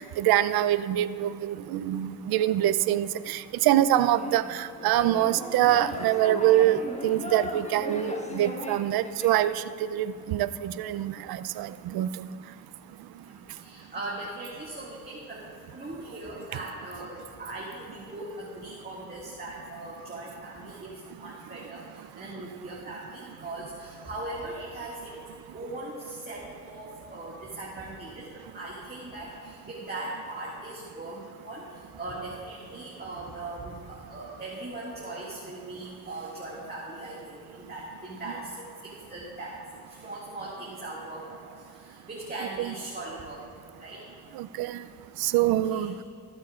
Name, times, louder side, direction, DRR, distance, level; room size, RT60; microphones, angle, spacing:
voice 1, 0.0-12.3 42.6-42.7 44.3-44.8 45.2-45.9, right 13 dB, 80° right, 14 dB, 0.5 m, -25 dB
sound 1, 4.1-9.4, left 1 dB, 20° left, 1.3 m, -37 dB
voice 2, 13.2-25.2 25.5-28.3 28.5-39.6 39.9-43.4 43.8-44.0 45.3-45.9, right 2 dB, 25° right, -6 dB, 2.0 m, -39 dB
20.5 x 8.9 x 2.4 m, 2.4 s
cardioid pair, 85°, 36 cm